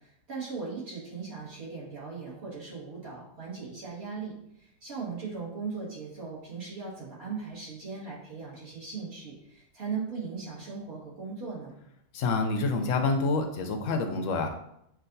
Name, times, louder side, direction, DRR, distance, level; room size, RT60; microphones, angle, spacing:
voice 1, 0.3-4.3 4.8-11.8, right 5 dB, 45° right, -6 dB, 1.8 m, -38 dB
voice 2, 12.1-14.5, left 3 dB, 65° left, 5 dB, 0.9 m, -27 dB
7.3 x 2.5 x 2.6 m, 0.75 s
omnidirectional pair, 1.6 m